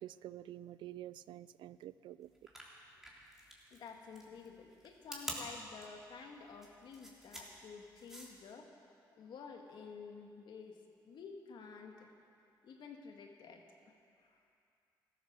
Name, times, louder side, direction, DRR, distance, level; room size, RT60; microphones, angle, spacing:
voice 1, 0.0-2.3, right 13 dB, 80° right, 17 dB, 0.4 m, -48 dB
sound 1, 2.3-8.5, equal, 5° right, 3.5 m, -48 dB
voice 2, 3.7-8.7 9.2-12.1 12.6-13.9 14.2-14.4, left 5 dB, 70° left, 3 dB, 1.8 m, -51 dB
14.5 x 13.5 x 6.7 m, 2.5 s
cardioid pair, 65°, 8 cm